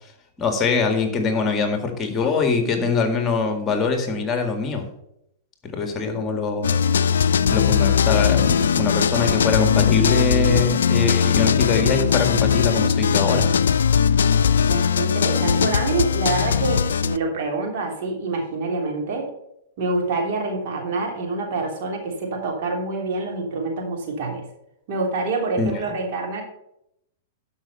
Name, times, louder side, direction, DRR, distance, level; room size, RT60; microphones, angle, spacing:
voice 1, 0.4-4.9 5.7-6.7 7.5-13.7 25.6-25.9, left 4 dB, 25° left, 5 dB, 1.9 m, -23 dB
sound 1, 6.6-17.2, left 7 dB, 80° left, 0.4 m, -19 dB
voice 2, 14.6-19.3 19.8-24.4 24.9-26.4, right 3 dB, 55° right, 1 dB, 3.1 m, -26 dB
12.0 x 5.6 x 5.6 m, 0.79 s
hypercardioid pair, 110°, 0 cm